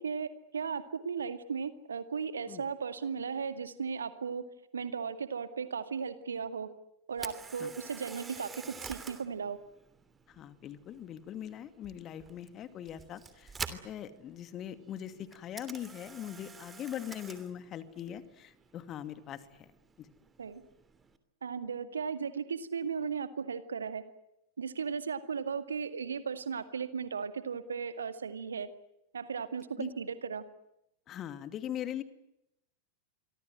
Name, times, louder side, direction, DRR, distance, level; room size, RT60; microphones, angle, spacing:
voice 1, 0.0-4.4 4.7-6.7 7.1-9.6 20.4-20.6 21.4-24.0 24.6-28.7 29.1-30.4, right 6 dB, 70° right, 11 dB, 2.1 m, -36 dB
Camera, 7.1-21.2, right 5 dB, 15° right, 3.0 m, -48 dB
voice 2, 10.3-13.5 13.8-19.7 20.0-20.1 29.8-29.9 31.1-32.0, left 10 dB, 30° left, 11 dB, 2.4 m, -41 dB
28.0 x 24.5 x 7.7 m, 0.83 s
figure-of-eight pair, 90°, 0 cm